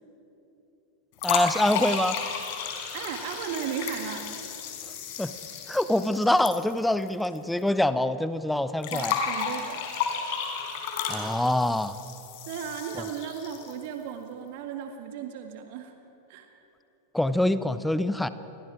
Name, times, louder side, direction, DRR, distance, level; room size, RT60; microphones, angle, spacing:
sound 1, 1.2-7.4 7.6-7.7 8.8-13.9, left 6 dB, 50° left, 4.3 m, -33 dB
voice 1, 1.2-2.2 5.2-5.3 5.7-9.2 11.1-12.0 17.1-18.3, left 1 dB, 5° left, 13 dB, 0.7 m, -25 dB
voice 2, 2.9-4.3 8.9-9.8 12.5-15.9 16.3-16.5, right 8 dB, 50° right, 5 dB, 1.7 m, -35 dB
29.5 x 25.5 x 5.0 m, 3.0 s
figure-of-eight pair, 90°, 0 cm